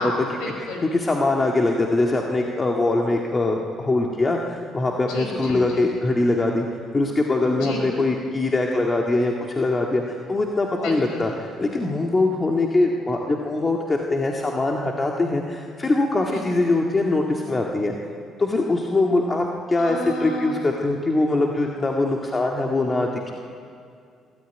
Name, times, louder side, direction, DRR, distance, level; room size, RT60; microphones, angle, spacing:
voice 1, 0.0-0.9 5.1-5.9 7.5-7.9 10.8-11.3 16.3-16.6 19.8-20.6, left 1 dB, 85° left, 2 dB, 5.2 m, -31 dB
voice 2, 0.9-6.7 6.9-11.3 11.6-17.9 18.4-23.3, left 2 dB, 25° left, 0 dB, 1.9 m, -22 dB
22.5 x 13.5 x 9.3 m, 2.3 s
cardioid pair, 85°, 0 cm